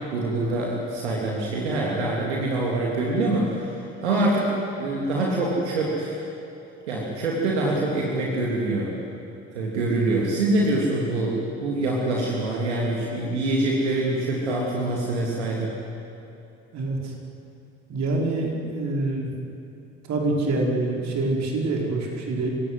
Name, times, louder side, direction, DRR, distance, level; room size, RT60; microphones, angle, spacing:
voice 1, 0.1-4.5 4.8-6.2 6.9-8.9 9.5-15.7, right 2 dB, 80° right, -3 dB, 3.2 m, -25 dB
voice 2, 16.7-17.1 17.9-19.3 20.1-22.5, right 2 dB, 50° right, 0 dB, 5.3 m, -26 dB
27.5 x 17.0 x 9.7 m, 2.9 s
figure-of-eight pair, 55°, 34 cm